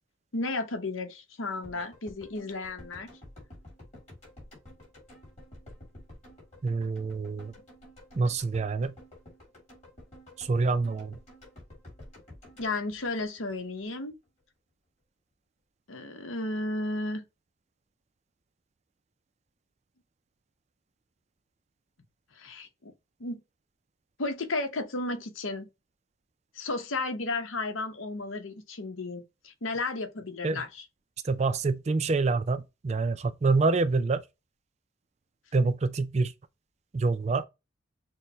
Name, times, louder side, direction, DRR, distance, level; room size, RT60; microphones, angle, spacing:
voice 1, 0.3-3.1 12.6-14.1 15.9-17.2 22.3-22.9 23.2-23.4 24.2-25.7 26.5-30.8, left 2 dB, 80° left, 0.9 m, -33 dB
sound 1, 1.6-13.8 14.1-14.2, left 1 dB, 35° left, 2.5 m, -51 dB
voice 2, 6.6-7.5 8.1-9.0 10.4-11.2 30.4-30.6 31.2-34.2 35.5-36.3 36.9-37.4, right 3 dB, 35° right, 0.4 m, -26 dB
6.3 x 2.2 x 2.7 m
head